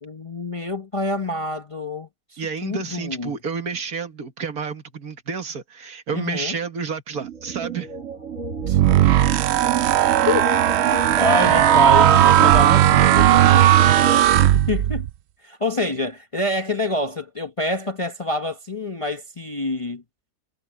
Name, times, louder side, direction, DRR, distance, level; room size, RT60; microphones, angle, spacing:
voice 1, 0.0-3.4 6.1-6.5 8.7-8.8 10.2-13.7 14.7-15.1 15.4-20.0, left 2 dB, 25° left, 0.8 m, -27 dB
voice 2, 2.4-7.9, right 5 dB, 70° right, 2.1 m, -30 dB
sound 1, 7.1-14.5, right 6 dB, 50° right, 2.4 m, -29 dB
sound 2, 8.6-15.1, right 12 dB, 85° right, 0.5 m, -16 dB
omnidirectional pair, 1.7 m